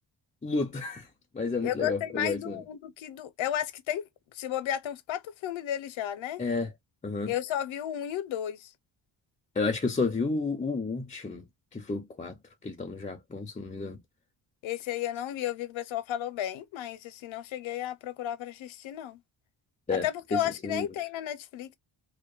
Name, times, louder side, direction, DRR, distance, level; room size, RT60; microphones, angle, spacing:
voice 1, 0.4-1.1 1.3-2.6 6.4-6.7 7.0-7.3 9.6-11.4 11.7-12.4 12.6-14.0 19.9-20.1 20.3-20.9, left 3 dB, 20° left, 0.3 m, -31 dB
voice 2, 1.6-4.0 4.3-6.4 7.3-8.7 14.6-19.2 19.9-21.7, left 11 dB, 80° left, 0.6 m, -33 dB
2.7 x 2.1 x 2.2 m
wide cardioid pair, 125°, 46 cm